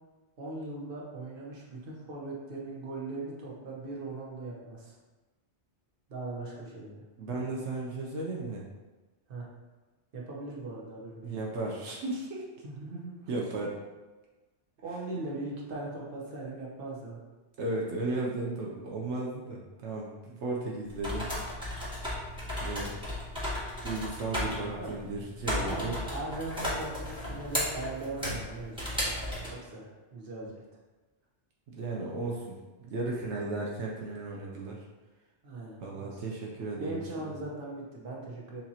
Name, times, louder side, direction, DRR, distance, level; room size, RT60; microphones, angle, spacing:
voice 1, 0.4-5.0 6.1-7.0 9.3-9.5 10.1-11.3 12.6-13.3 14.8-17.2 24.7-25.0 25.5-29.1 29.5-30.6 35.4-36.2 36.8-38.6, right 2 dB, 50° right, -3 dB, 1.1 m, -39 dB
voice 2, 7.2-8.7 11.2-12.4 13.3-13.8 17.6-21.3 22.6-22.9 23.8-26.0 31.7-34.8 35.8-37.4, right 2 dB, 80° right, -2 dB, 1.0 m, -35 dB
sound 1, 20.9-29.5, left 1 dB, 5° right, 1.4 m, -35 dB
7.1 x 2.5 x 2.8 m, 1.2 s
omnidirectional pair, 1.2 m